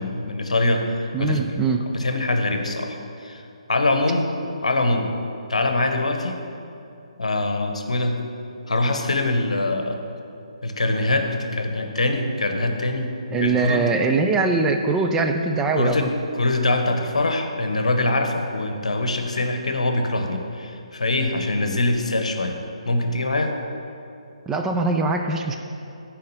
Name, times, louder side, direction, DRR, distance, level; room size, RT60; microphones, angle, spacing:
voice 1, 0.0-1.5 1.9-3.4 3.7-4.3 4.6-5.1 5.5-6.4 7.2-8.2 8.7-10.0 10.6-13.1 13.4-13.9 15.7-22.6 22.8-23.5, left 2 dB, 70° left, 5 dB, 0.9 m, -23 dB
voice 2, 1.1-1.9 13.3-16.1 24.5-25.6, right 3 dB, 10° right, 3 dB, 0.3 m, -22 dB
6.6 x 4.8 x 6.7 m, 2.7 s
figure-of-eight pair, 140°, 4 cm